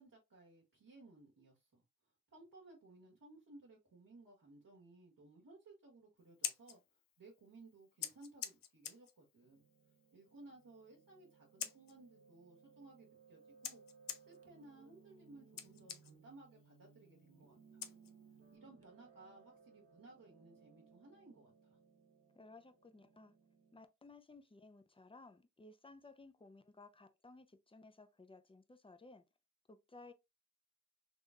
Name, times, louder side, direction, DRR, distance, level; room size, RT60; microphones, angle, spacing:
voice 1, 0.0-9.6 10.1-13.8 14.3-17.8 18.5-21.8, right 2 dB, 75° right, 1.3 m, -60 dB
Scissors, 6.2-18.6, left 9 dB, 75° left, 0.5 m, -50 dB
Piano, 9.4-23.9, right 5 dB, 45° right, 0.9 m, -65 dB
voice 2, 22.3-23.3 23.7-29.2 29.7-30.1, left 3 dB, 15° left, 0.6 m, -58 dB
3.6 x 3.0 x 2.4 m
cardioid pair, 45°, 33 cm